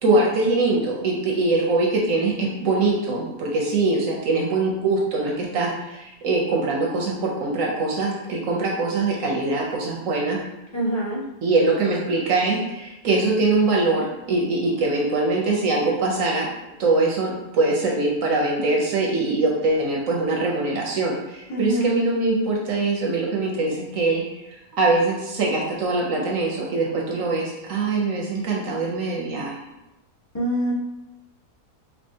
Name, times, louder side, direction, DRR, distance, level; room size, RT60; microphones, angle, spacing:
voice 1, 0.0-10.4 11.4-16.5 16.8-29.6, right 3 dB, 65° right, -2 dB, 1.0 m, -23 dB
voice 2, 10.7-11.2 21.5-22.0 30.3-30.7, right 1 dB, 15° left, -8 dB, 1.0 m, -24 dB
4.5 x 2.8 x 2.7 m, 0.97 s
omnidirectional pair, 1.7 m